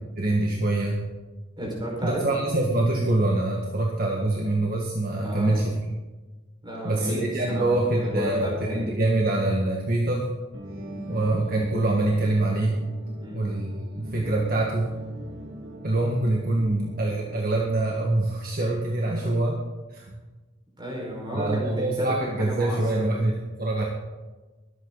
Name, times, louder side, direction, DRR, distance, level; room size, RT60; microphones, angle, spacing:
voice 1, 0.2-1.0 2.0-5.7 6.8-10.3 11.1-12.8 13.3-14.9 15.8-19.6 19.9-20.2 21.3-23.8, right 2 dB, 50° right, -2 dB, 1.7 m, -25 dB
voice 2, 1.6-2.2 5.2-5.7 6.6-8.9 10.8-11.0 13.2-13.4 19.2-19.4 20.8-23.1, equal, 25° right, -2 dB, 5.1 m, -33 dB
sound 1, 10.5-18.1, equal, 70° right, 2.1 m, -41 dB
22.5 x 9.0 x 4.0 m, 1.2 s
head